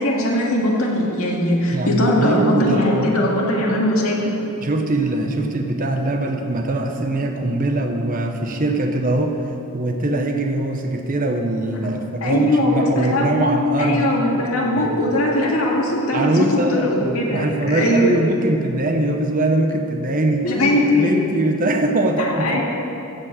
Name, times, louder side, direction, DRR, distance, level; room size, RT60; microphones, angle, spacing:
voice 1, 0.0-4.3 12.2-18.2 20.4-21.1 22.2-22.6, left 1 dB, 70° left, -2 dB, 1.9 m, -20 dB
voice 2, 1.7-3.1 4.6-14.1 14.8-14.9 16.1-20.5 20.9-22.6, right 2 dB, 40° right, 3 dB, 0.8 m, -22 dB
14.5 x 5.2 x 7.5 m, 3.0 s
head